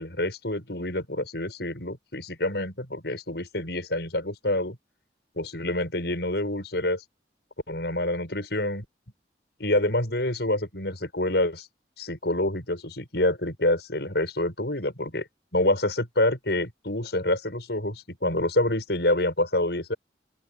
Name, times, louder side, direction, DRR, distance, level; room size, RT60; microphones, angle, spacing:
voice 1, 0.0-4.8 5.4-7.0 7.7-8.9 9.6-11.7 12.0-15.3 15.5-19.9, left 1 dB, 65° left, 6.8 m, -27 dB
open air
head